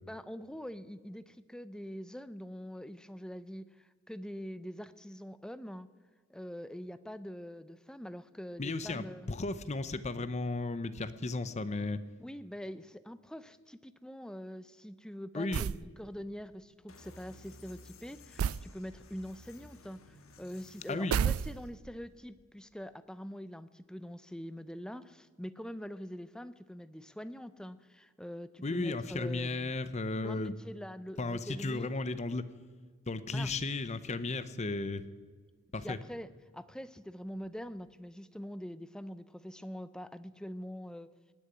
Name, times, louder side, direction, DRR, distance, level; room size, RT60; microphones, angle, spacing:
voice 1, 0.1-5.9 6.3-9.3 12.2-29.8 30.2-31.9 33.3-33.5 35.8-41.1, equal, 5° left, 14 dB, 0.5 m, -44 dB
voice 2, 8.6-12.0 15.3-15.6 20.9-21.2 28.6-30.5 31.2-32.5 33.1-35.0 35.7-36.0, left 2 dB, 35° left, 13 dB, 0.7 m, -34 dB
sound 1, 15.5-15.9 18.4-18.7 21.1-21.9, right 7 dB, 90° right, 0.3 m, -31 dB
sound 2, 16.9-21.7, left 2 dB, 80° left, 1.5 m, -55 dB
18.5 x 6.7 x 9.8 m, 1.5 s
head